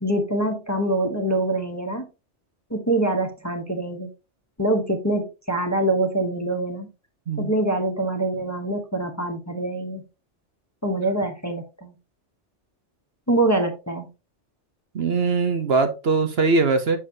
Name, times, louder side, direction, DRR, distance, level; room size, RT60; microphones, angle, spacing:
voice 1, 0.0-2.0 2.7-4.1 4.6-6.9 7.4-10.0 10.8-11.9 13.3-14.1, right 2 dB, 15° left, 3 dB, 0.9 m, -24 dB
voice 2, 14.9-17.0, right 4 dB, 60° right, 7 dB, 1.1 m, -21 dB
6.4 x 6.1 x 2.8 m, 0.29 s
omnidirectional pair, 1.2 m